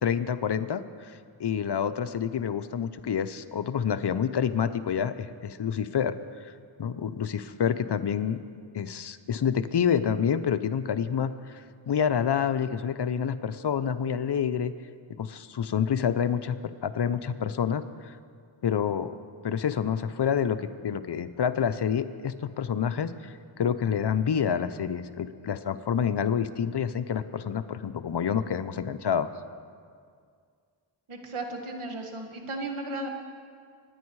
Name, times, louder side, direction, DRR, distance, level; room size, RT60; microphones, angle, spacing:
voice 1, 0.0-6.5 6.8-8.4 8.7-14.7 15.2-16.6 16.8-18.2 18.6-19.1 19.4-29.3, left 8 dB, 55° left, 12 dB, 0.8 m, -28 dB
voice 2, 31.1-33.1, right 2 dB, 75° right, 3 dB, 1.9 m, -35 dB
25.0 x 9.8 x 4.8 m, 2.1 s
cardioid pair, 60°, 50 cm